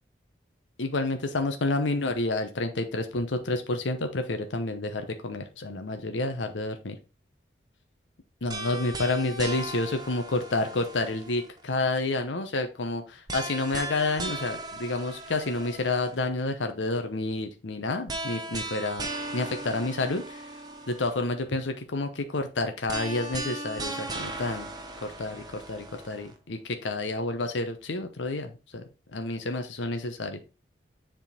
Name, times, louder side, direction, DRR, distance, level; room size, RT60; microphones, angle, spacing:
voice 1, 0.8-7.0 8.4-19.1 19.3-20.2 20.9-24.7 25.0-28.8 29.1-30.4, left 2 dB, 90° left, 7 dB, 0.8 m, -29 dB
sound 1, 8.5-11.6 13.3-16.3 18.1-21.2 22.9-26.3, right 2 dB, 20° right, 0.9 m, -37 dB
7.4 x 3.7 x 4.2 m, 0.31 s
head